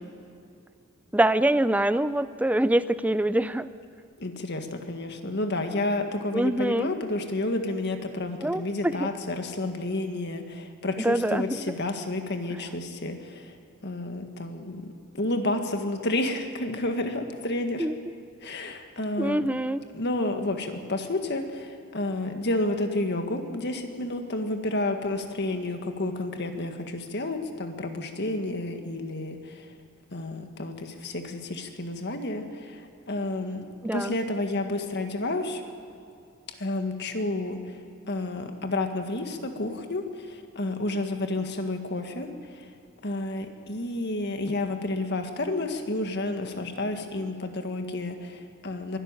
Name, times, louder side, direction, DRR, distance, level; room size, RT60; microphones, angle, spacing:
voice 1, 1.1-3.7 6.3-6.9 8.4-9.1 11.0-11.6 17.8-17.9 19.2-19.9 33.8-34.1, right 1 dB, 5° right, 14 dB, 0.4 m, -24 dB
voice 2, 4.2-13.6 13.8-14.9 15.2-17.9 18.4-19.5 19.9-29.7 30.1-33.6 33.9-35.6 36.6-37.8 38.1-42.7 43.0-49.0, left 2 dB, 55° left, 6 dB, 1.8 m, -30 dB
23.0 x 12.5 x 9.0 m, 2.5 s
head